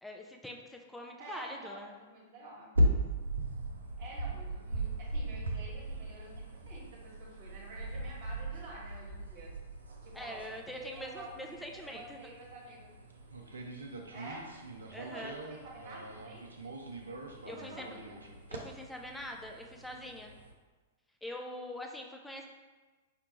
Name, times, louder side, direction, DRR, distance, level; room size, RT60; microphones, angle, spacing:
voice 1, 0.0-1.9 10.1-12.2 14.9-15.4 17.4-17.9 18.5-20.3 21.2-22.5, left 1 dB, 5° left, 1 dB, 0.4 m, -44 dB
voice 2, 1.2-2.7 4.0-9.5 10.0-12.9 14.1-14.5 14.9-16.4 17.3-18.2, right 2 dB, 50° right, -3 dB, 1.2 m, -49 dB
sound 1, 2.7-20.5, right 1 dB, 80° right, 0.5 m, -38 dB
4.9 x 2.2 x 2.9 m, 1.3 s
figure-of-eight pair, 105°, 0 cm